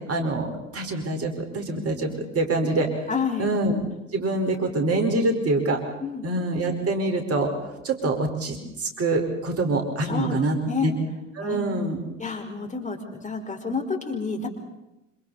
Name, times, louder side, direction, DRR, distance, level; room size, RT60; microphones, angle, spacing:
voice 1, 0.1-2.9 3.4-3.8 4.1-5.8 6.2-7.5 7.8-10.6 10.8-10.9 11.4-12.0, right 2 dB, 40° right, 4 dB, 4.8 m, -25 dB
voice 2, 3.1-3.5 6.0-6.2 10.0-10.9 11.4-11.7 12.2-14.5, left 5 dB, 20° left, 3 dB, 4.8 m, -29 dB
27.5 x 26.5 x 4.2 m, 0.93 s
hypercardioid pair, 70°, 37 cm